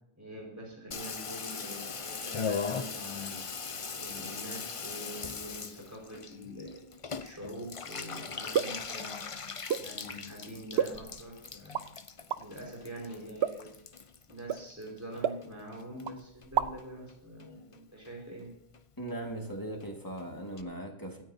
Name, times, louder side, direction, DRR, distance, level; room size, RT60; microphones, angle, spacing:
voice 1, 0.2-3.4 3.9-6.8 7.2-9.2 9.8-11.8 12.4-13.7 14.3-18.6, equal, 15° right, -3 dB, 4.8 m, -44 dB
Water tap faucet / Bathtub (filling or washing), 0.9-15.5 15.7-16.5 16.8-16.9 17.1-17.2 17.4-17.8 18.1-18.2 18.4-18.5 18.7-18.8 19.1-19.2 19.4-19.5 19.8-19.9 20.2-20.3 20.6-20.7, left 5 dB, 35° left, 0.7 m, -40 dB
sound 1, 8.5-8.9 9.7-9.9 10.8-11.3 11.7-11.9 12.3-12.4 13.4-13.7 14.5-14.7 15.2-15.8 16.1-16.2 16.4-16.9, right 8 dB, 85° right, 0.9 m, -31 dB
voice 2, 19.0-21.2, right 1 dB, 20° left, 1 dB, 2.1 m, -39 dB
25.5 x 9.3 x 2.7 m, 0.76 s
omnidirectional pair, 1.0 m